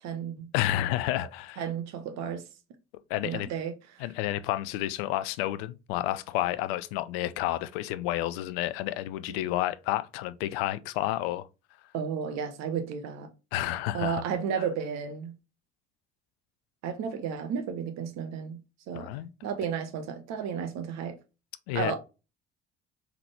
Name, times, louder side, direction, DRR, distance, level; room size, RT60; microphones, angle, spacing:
voice 1, 0.0-0.5 1.6-2.4 3.2-4.0 11.9-13.3 13.9-15.4 16.8-18.6 18.9-19.1 19.4-21.2 21.7-22.0, right 7 dB, 50° right, 0.9 m, -33 dB
voice 2, 0.5-1.6 3.1-3.5 4.0-11.5 13.5-14.2 18.9-19.3 21.7-21.9, left 14 dB, 60° left, 0.5 m, -30 dB
3.7 x 3.4 x 3.3 m
figure-of-eight pair, 55°, 33 cm